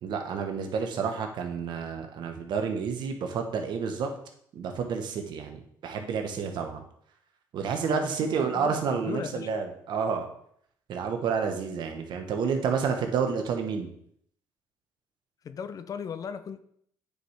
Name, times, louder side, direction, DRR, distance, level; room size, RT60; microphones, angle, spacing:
voice 1, 0.0-4.1 4.5-6.8 7.5-10.3 10.9-13.9, right 6 dB, 65° right, 1.2 m, -30 dB
voice 2, 7.9-9.5 15.4-16.6, left 7 dB, 45° left, 0.6 m, -37 dB
9.0 x 4.9 x 3.4 m
cardioid pair, 85°, 8 cm